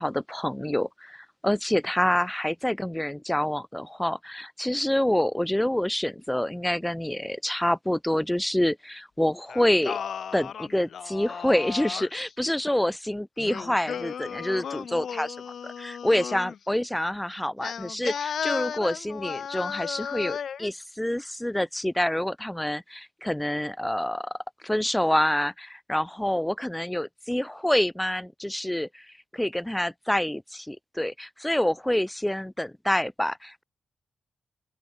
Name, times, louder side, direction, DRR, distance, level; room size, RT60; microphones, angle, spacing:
voice 1, 0.0-10.0 10.3-15.4 15.6-29.1 29.3-33.6, left 1 dB, 5° left, 0.4 m, -27 dB
Singing, 9.5-12.3 13.4-16.6 17.6-20.7, left 7 dB, 70° left, 1.9 m, -34 dB
open air
cardioid pair, 95°, 0 cm